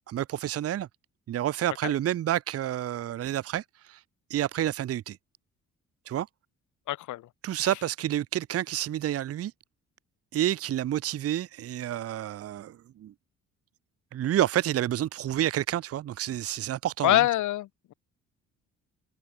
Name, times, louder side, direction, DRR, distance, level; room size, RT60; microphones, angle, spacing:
voice 1, 0.1-0.9 1.3-4.0 4.3-5.2 6.1-6.3 7.4-9.5 10.3-13.1 14.1-17.3, right 12 dB, 50° right, 0.7 m, -29 dB
voice 2, 6.9-7.2 17.0-17.9, left 15 dB, 75° left, 1.0 m, -25 dB
cardioid pair, 90°, 30 cm